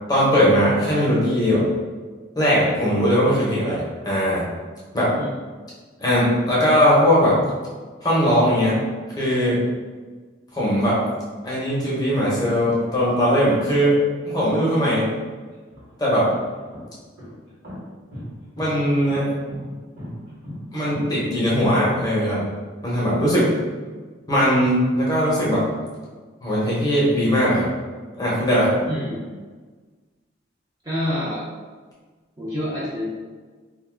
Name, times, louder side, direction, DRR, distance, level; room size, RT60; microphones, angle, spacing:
voice 1, 0.1-1.6 2.4-4.4 4.9-5.1 6.0-7.4 8.0-8.8 9.2-9.6 10.5-11.0 11.4-14.0 14.2-15.1 16.0-16.3 18.6-19.3 20.7-22.5 22.8-23.5 24.3-25.6 26.4-27.7 28.2-28.7, equal, 20° left, -7 dB, 0.8 m, -19 dB
sound 1, 15.5-22.1, left 1 dB, 50° right, 1.1 m, -37 dB
voice 2, 28.9-29.2 30.8-31.4 32.4-33.1, left 1 dB, 20° right, -8 dB, 0.6 m, -27 dB
2.6 x 2.3 x 3.7 m, 1.4 s
head